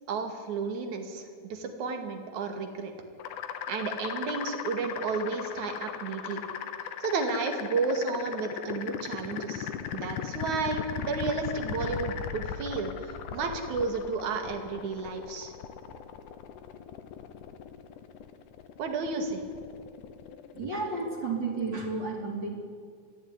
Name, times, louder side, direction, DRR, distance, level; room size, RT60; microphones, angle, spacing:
voice 1, 0.1-2.9 3.7-6.4 7.0-12.9 13.3-15.5 18.8-19.4, right 4 dB, 70° right, 6 dB, 3.5 m, -32 dB
sound 1, 3.2-21.9, left 8 dB, 90° left, 2.6 m, -38 dB
voice 2, 20.5-22.6, right 3 dB, 35° right, 1 dB, 4.0 m, -32 dB
23.0 x 15.0 x 9.7 m, 2.1 s
omnidirectional pair, 3.5 m